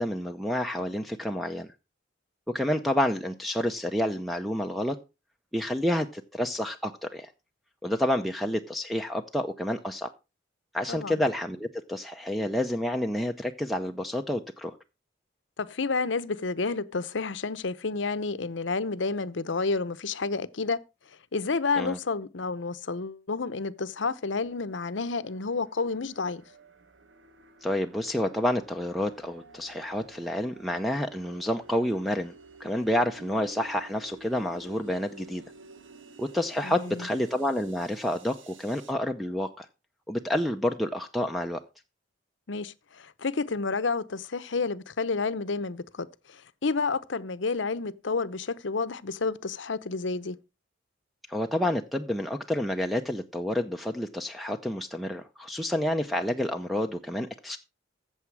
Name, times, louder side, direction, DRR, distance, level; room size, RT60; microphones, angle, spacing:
voice 1, 0.0-1.7 2.5-5.0 5.5-7.3 7.8-10.1 10.7-14.8 21.8-22.0 27.6-32.3 32.6-35.4 36.2-39.7 40.1-41.6 51.3-57.6, left 1 dB, ahead, 0.6 m, -29 dB
voice 2, 10.9-11.2 15.6-20.8 21.3-26.4 36.6-37.1 42.5-50.4, left 4 dB, 75° left, 0.8 m, -30 dB
sound 1, 24.0-38.9, right 3 dB, 80° right, 1.6 m, -52 dB
14.5 x 7.3 x 4.7 m
head